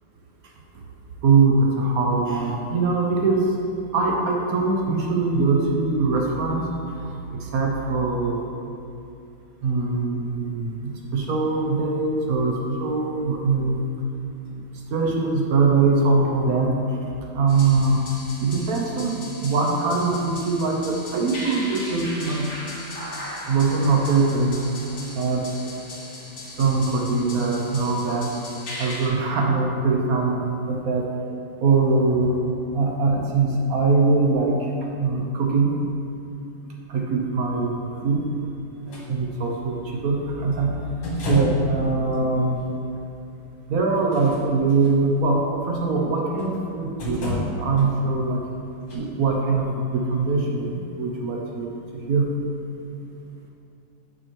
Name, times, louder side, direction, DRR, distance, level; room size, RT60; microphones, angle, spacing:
voice 1, 1.2-3.5 3.9-6.7 7.0-8.4 9.6-13.8 14.9-16.7 17.3-18.0 18.4-22.5 23.5-24.6 25.2-25.5 26.6-28.3 28.8-30.4 30.7-31.1 31.6-32.4 32.7-34.6 35.0-35.8 36.9-38.5 38.9-39.8 40.0-40.7 41.3-42.6 43.7-48.4 48.9-51.7 52.1-52.3, right 3 dB, 65° right, 0 dB, 1.0 m, -22 dB
sound 1, 17.5-29.1, left 1 dB, 45° left, 2.1 m, -38 dB
sound 2, 38.9-39.0 41.0-41.7 42.6-42.7 43.9-44.9 46.4-46.6 47.0-47.9 48.9-49.0, left 1 dB, 70° left, 2.2 m, -29 dB
9.3 x 5.2 x 3.1 m, 2.6 s
omnidirectional pair, 2.2 m